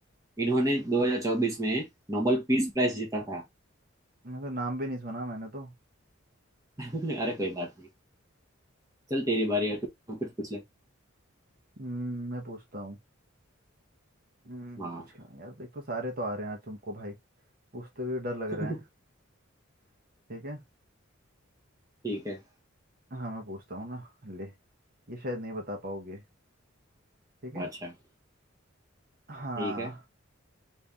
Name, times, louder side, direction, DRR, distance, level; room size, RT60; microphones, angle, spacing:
voice 1, 0.4-3.4 6.8-7.9 9.1-10.6 14.8-15.1 18.5-18.8 22.0-22.4 27.5-27.9 29.6-29.9, right 1 dB, 15° right, 1.0 m, -29 dB
voice 2, 4.2-5.7 11.8-13.0 14.5-14.9 15.3-17.2 17.7-18.8 20.3-20.6 23.1-24.5 25.1-26.2 27.4-27.7 29.3-30.0, equal, 45° right, 1.1 m, -36 dB
3.3 x 2.7 x 3.4 m
head